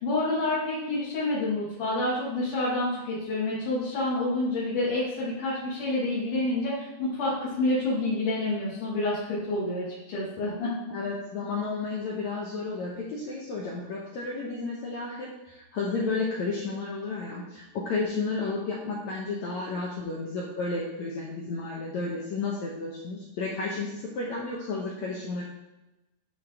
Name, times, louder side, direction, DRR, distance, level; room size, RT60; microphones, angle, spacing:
voice 1, 0.0-10.7, left 2 dB, 60° left, -9 dB, 3.2 m, -28 dB
voice 2, 10.9-25.4, left 3 dB, 85° left, -3 dB, 1.6 m, -32 dB
11.0 x 4.2 x 3.5 m, 1.0 s
omnidirectional pair, 4.6 m